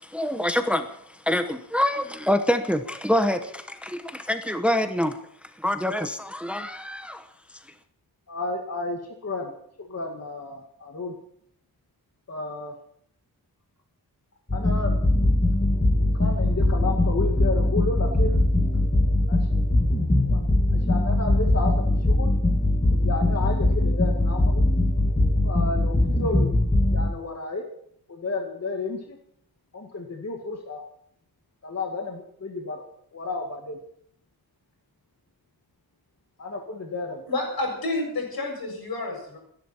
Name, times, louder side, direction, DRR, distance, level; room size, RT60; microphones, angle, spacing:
voice 1, 0.0-7.6, left 1 dB, 5° right, 8 dB, 0.9 m, -26 dB
voice 2, 8.3-9.5 9.8-11.1 12.3-12.7 14.5-15.0 15.9-18.4 19.3-19.5 20.3-20.4 20.7-22.3 22.9-24.6 25.4-26.5 26.9-27.6 28.1-29.2 29.7-30.8 31.6-32.8 33.1-33.8 36.4-37.2, left 3 dB, 45° left, 2 dB, 2.1 m, -32 dB
sound 1, 14.5-27.1, left 1 dB, 20° left, 2.3 m, -21 dB
voice 3, 37.3-39.4, left 2 dB, 80° left, 1 dB, 7.4 m, -29 dB
29.5 x 11.0 x 4.4 m, 0.68 s
wide cardioid pair, 150°, 36 cm